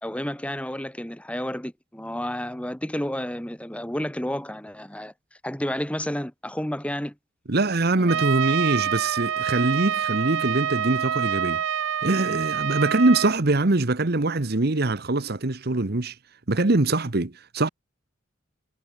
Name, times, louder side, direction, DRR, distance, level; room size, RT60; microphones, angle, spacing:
voice 1, 0.0-5.1 5.4-7.1 8.0-8.2, equal, 5° left, 2.4 m, -31 dB
voice 2, 7.5-11.6 12.0-16.2 16.5-17.7, right 2 dB, 55° right, 1.2 m, -23 dB
Trumpet, 8.1-13.4, right 9 dB, 85° right, 0.5 m, -26 dB
head